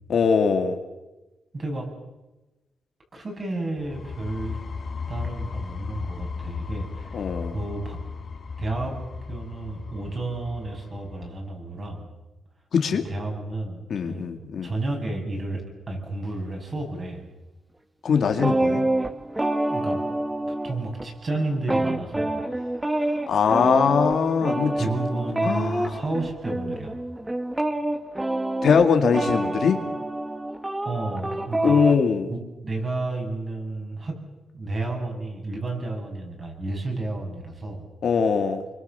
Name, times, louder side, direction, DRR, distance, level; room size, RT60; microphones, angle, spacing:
voice 1, 0.1-0.8 7.1-7.5 12.7-13.1 13.9-14.7 18.0-18.8 23.3-24.9 25.4-26.0 28.6-29.8 31.6-32.3 38.0-38.6, left 6 dB, 55° left, 6 dB, 2.4 m, -21 dB
voice 2, 1.5-1.9 3.1-4.6 5.1-7.2 7.5-8.0 8.6-9.0 9.3-12.1 13.0-14.2 14.6-17.2 19.7-20.0 20.6-22.4 24.7-27.0 30.8-31.8 32.3-34.2 34.5-37.9, right 2 dB, 30° right, 2 dB, 7.5 m, -31 dB
sound 1, 3.8-11.4, left 5 dB, 40° left, 2.8 m, -35 dB
sound 2, 18.3-21.1 21.3-32.0, right 1 dB, 10° right, 1.3 m, -27 dB
28.5 x 24.5 x 7.0 m, 1.1 s
wide cardioid pair, 145°, 0 cm